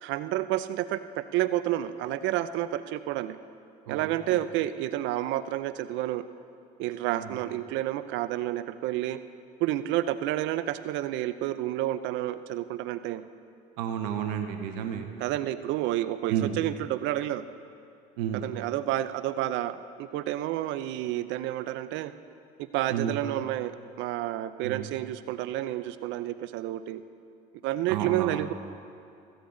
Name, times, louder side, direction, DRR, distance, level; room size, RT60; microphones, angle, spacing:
voice 1, 0.0-3.4 3.9-6.2 6.8-9.2 9.6-13.2 15.2-17.4 18.3-22.1 22.6-23.7 24.0-27.0 27.6-28.5, right 14 dB, 70° right, 13 dB, 0.6 m, -30 dB
voice 2, 13.8-15.1 16.3-16.6 18.2-18.4 22.9-23.2 24.6-24.8 27.9-28.4, right 9 dB, 90° right, 5 dB, 1.0 m, -31 dB
15.5 x 15.0 x 3.9 m, 2.5 s
supercardioid pair, 95°, 20 cm